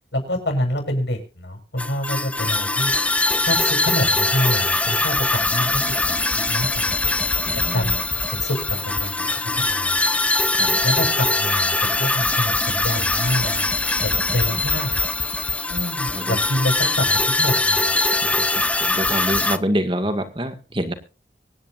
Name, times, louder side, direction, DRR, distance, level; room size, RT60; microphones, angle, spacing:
voice 1, 0.1-2.9 3.4-7.1 7.7-10.1 10.8-13.7 14.0-15.0 15.7-18.3, left 1 dB, 85° left, 4 dB, 7.1 m, -27 dB
sound 1, 1.8-19.6, left 2 dB, 10° left, 0.6 m, -22 dB
voice 2, 7.5-8.0 10.5-10.8 14.1-14.6 16.1-16.4 18.2-20.9, equal, 30° right, 8 dB, 2.0 m, -27 dB
24.5 x 10.0 x 2.6 m, 0.33 s
head